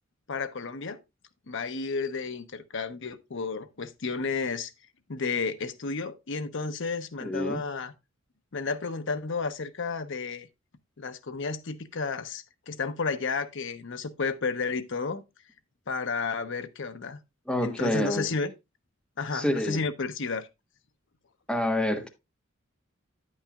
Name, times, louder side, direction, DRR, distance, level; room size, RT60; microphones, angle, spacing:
voice 1, 0.3-1.0 1.5-4.7 5.1-7.9 8.5-10.5 11.0-15.2 15.9-17.2 17.6-18.5 19.2-20.5, left 4 dB, 65° left, 0.8 m, -32 dB
voice 2, 7.2-7.6 17.5-18.3 19.3-19.8 21.5-22.1, left 1 dB, 5° left, 1.3 m, -27 dB
9.7 x 8.7 x 2.3 m
head